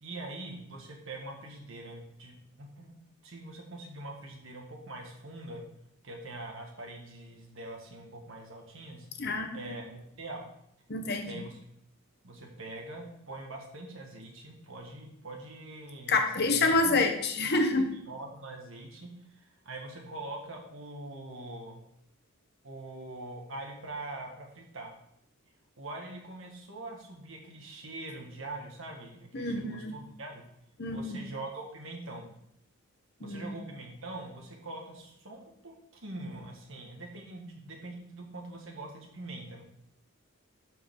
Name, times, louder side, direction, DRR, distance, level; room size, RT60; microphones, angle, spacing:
voice 1, 0.0-5.6 6.0-9.1 9.5-10.5 11.3-11.6 12.2-17.0 17.8-21.8 22.6-24.9 25.8-30.4 30.9-32.3 33.2-39.6, right 2 dB, 65° right, 1 dB, 1.7 m, -43 dB
voice 2, 9.2-9.8 10.9-11.3 16.1-17.9 29.3-30.0 30.8-31.2 33.2-33.5, left 3 dB, 50° left, 5 dB, 1.0 m, -28 dB
12.0 x 4.8 x 3.8 m, 0.76 s
head